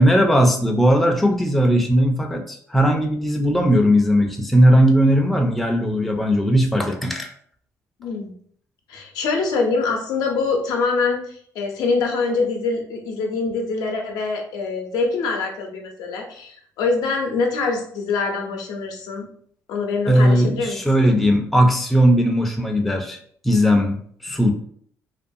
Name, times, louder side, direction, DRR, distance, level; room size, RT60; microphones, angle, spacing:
voice 1, 0.0-7.3 20.1-23.2 23.4-24.5, equal, ahead, 3 dB, 0.3 m, -18 dB
voice 2, 8.0-8.3 8.9-19.3 19.7-20.8, left 4 dB, 80° left, 2 dB, 0.6 m, -24 dB
2.4 x 2.3 x 2.6 m, 0.62 s
cardioid pair, 90°, 7 cm